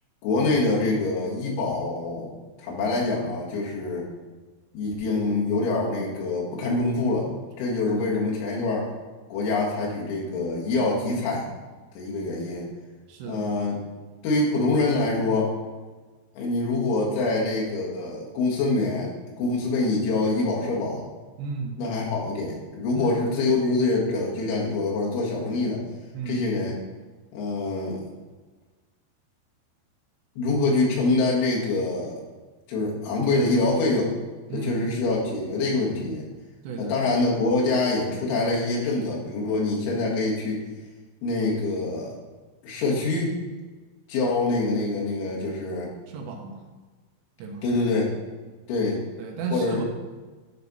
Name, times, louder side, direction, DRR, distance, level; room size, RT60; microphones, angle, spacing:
voice 1, 0.2-4.1 4.7-7.3 7.6-8.9 9.3-11.5 12.0-12.7 13.3-13.8 14.2-15.5 16.4-21.1 21.8-25.8 26.3-26.8 27.3-28.0 30.4-32.2 32.7-34.1 34.5-36.3 36.8-40.6 41.2-42.1 42.6-43.4 44.1-45.9 47.6-48.1 48.7-49.0 49.5-49.8, left 2 dB, 85° left, -3 dB, 4.2 m, -25 dB
voice 2, 13.1-13.5 21.4-21.8 22.9-23.2 26.1-26.4 34.5-34.9 36.6-37.0 46.1-46.6 47.4-47.6 49.2-49.8, right 4 dB, 75° right, 2 dB, 3.0 m, -34 dB
10.0 x 5.1 x 4.0 m, 1.3 s
omnidirectional pair, 5.3 m